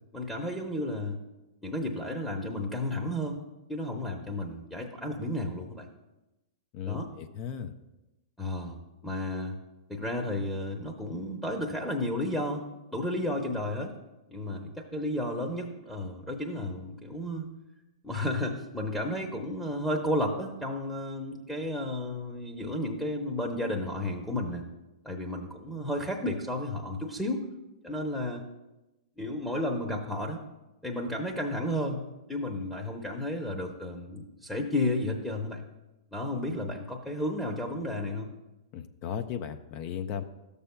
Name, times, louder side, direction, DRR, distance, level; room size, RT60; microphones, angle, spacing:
voice 1, 0.1-1.2 1.6-3.4 3.7-5.9 6.9-7.1 8.4-8.8 9.0-9.6 9.9-12.7 12.9-13.9 14.3-17.5 18.0-24.7 25.0-27.4 27.8-28.4 29.2-30.4 30.8-32.0 32.3-35.6 36.1-38.3, left 1 dB, 5° left, 0 dB, 0.8 m, -32 dB
voice 2, 6.7-7.7 38.7-40.2, left 8 dB, 40° left, 9 dB, 0.5 m, -36 dB
13.0 x 6.8 x 2.2 m, 1.0 s
hypercardioid pair, 115°, 3 cm